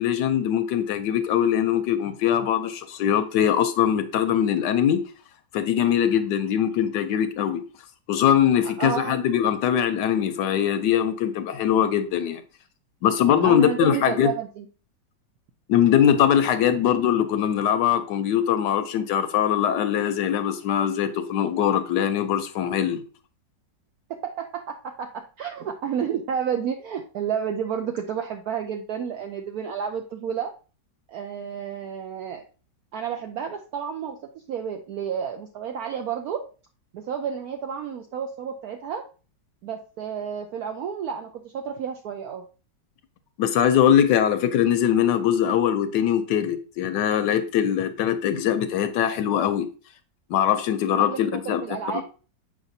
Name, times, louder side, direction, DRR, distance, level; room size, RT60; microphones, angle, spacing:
voice 1, 0.0-5.0 5.5-7.6 8.1-12.4 13.0-14.3 15.7-23.0 43.4-49.7 50.3-51.6 51.9-52.0, left 9 dB, 75° left, 1.2 m, -22 dB
voice 2, 8.6-9.2 13.4-14.7 24.1-30.5 31.1-32.4 32.9-34.2 34.5-36.4 36.9-39.0 39.6-42.4 51.1-52.0, right 8 dB, 70° right, 0.9 m, -31 dB
7.3 x 5.1 x 2.6 m
omnidirectional pair, 2.0 m